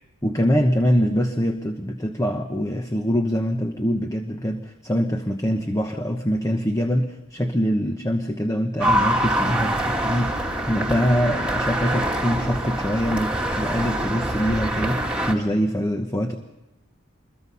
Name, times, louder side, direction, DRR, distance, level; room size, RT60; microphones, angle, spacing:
voice 1, 0.2-16.3, equal, 15° left, 5 dB, 1.0 m, -24 dB
sound 1, 8.8-15.3, right 1 dB, 5° right, 1.9 m, -25 dB
26.5 x 22.5 x 5.5 m, 1.0 s
head